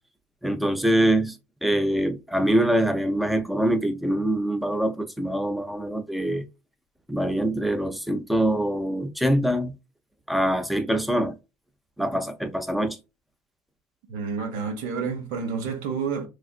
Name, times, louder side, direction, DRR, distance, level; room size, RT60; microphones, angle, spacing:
voice 1, 0.4-6.4 7.1-9.7 10.3-11.3 12.0-13.0, right 1 dB, ahead, 0.5 m, -24 dB
voice 2, 14.1-16.3, right 5 dB, 75° right, 0.9 m, -29 dB
3.3 x 2.4 x 2.4 m
supercardioid pair, 125°, 8 cm